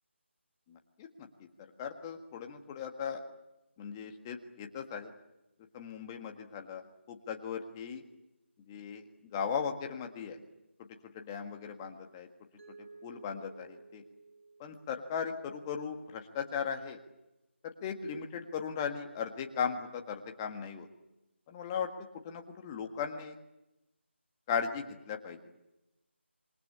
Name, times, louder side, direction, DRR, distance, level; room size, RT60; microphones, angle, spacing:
voice 1, 0.7-1.3 1.8-3.2 3.8-5.1 5.7-8.0 8.7-10.4 11.1-12.3 13.0-14.0 14.6-17.0 17.6-20.9 21.5-21.9 22.2-23.3 24.5-25.4, left 7 dB, 15° left, 4 dB, 1.7 m, -37 dB
Mallet percussion, 12.6-15.5, right 3 dB, 85° right, 6.8 m, -55 dB
27.0 x 21.5 x 8.6 m, 0.94 s
figure-of-eight pair, 165°, 7 cm